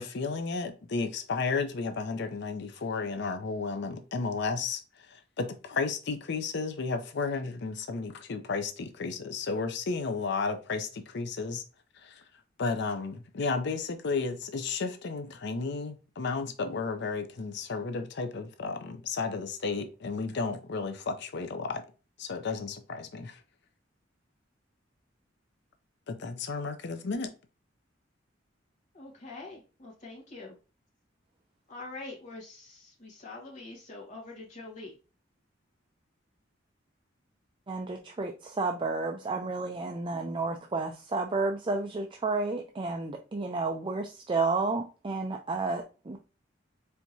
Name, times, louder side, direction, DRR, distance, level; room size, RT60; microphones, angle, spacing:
voice 1, 0.0-11.6 12.0-12.2 12.6-21.8 22.2-23.4 26.1-27.3, left 4 dB, 60° left, 0.6 m, -33 dB
voice 2, 28.9-30.6 31.7-35.0, left 2 dB, 40° left, 1.7 m, -44 dB
voice 3, 37.7-46.2, right 3 dB, 25° right, 0.4 m, -31 dB
4.5 x 3.5 x 2.7 m
head